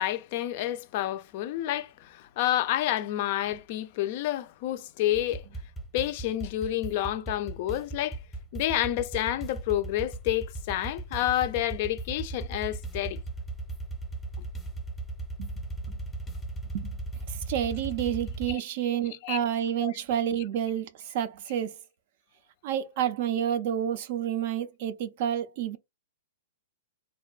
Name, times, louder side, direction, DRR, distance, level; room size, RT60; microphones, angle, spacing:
voice 1, 0.0-5.4 5.9-8.2 8.5-13.2 18.5-18.6 19.2-19.4 19.8-19.9, left 13 dB, 50° left, 0.3 m, -29 dB
sound 1, 5.1-18.5, right 2 dB, 10° left, 0.6 m, -37 dB
voice 2, 17.3-21.7 22.6-25.8, right 10 dB, 55° right, 0.4 m, -29 dB
2.6 x 2.2 x 2.3 m
hypercardioid pair, 130°, 0 cm